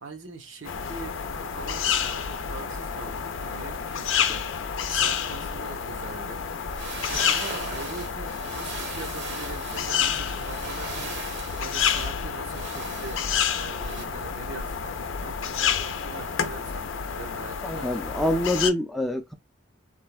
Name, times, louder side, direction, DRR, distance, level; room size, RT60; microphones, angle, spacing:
voice 1, 0.0-1.2 1.5-4.4 4.9-6.4 7.1-11.2 11.6-13.2 13.6-17.9, right 4 dB, 90° right, 0.9 m, -42 dB
sound 1, 0.6-18.7, left 7 dB, 90° left, 0.5 m, -29 dB
sound 2, 6.6-14.1, right 4 dB, 60° right, 0.8 m, -39 dB
voice 2, 17.6-19.3, left 1 dB, ahead, 0.3 m, -26 dB
3.3 x 2.2 x 2.3 m
head